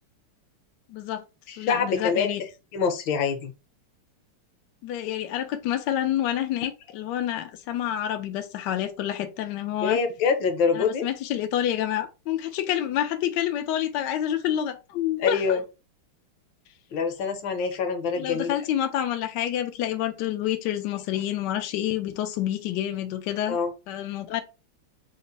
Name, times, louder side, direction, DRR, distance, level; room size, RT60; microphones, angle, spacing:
voice 1, 0.9-1.2 1.6-2.4 4.8-10.0 10.7-15.6 18.2-23.6 23.9-24.4, left 11 dB, 85° left, 0.9 m, -28 dB
voice 2, 1.5-2.3 2.7-3.5 9.8-11.1 15.2-15.6 16.9-18.5 23.5-23.7, left 5 dB, 65° left, 1.4 m, -25 dB
4.3 x 2.0 x 3.9 m
omnidirectional pair, 2.4 m